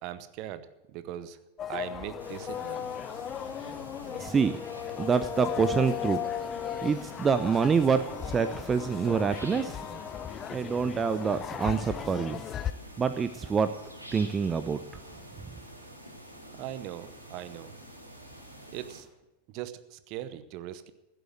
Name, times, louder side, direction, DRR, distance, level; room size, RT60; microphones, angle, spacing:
voice 1, 0.0-1.4 1.7-2.9 16.6-17.7 18.7-19.1 19.5-20.9, right 12 dB, 40° right, 13 dB, 0.9 m, -40 dB
sound 1, 1.6-12.7, left 9 dB, 25° left, 0.5 m, -36 dB
sound 2, 2.2-19.0, equal, 85° right, 2.7 m, -48 dB
voice 2, 4.2-4.6 5.0-6.2 6.8-9.8 10.5-12.4 13.0-13.7 14.1-14.8, right 6 dB, 20° right, 10 dB, 0.6 m, -26 dB
15.5 x 7.8 x 9.3 m, 0.97 s
figure-of-eight pair, 90°, 0 cm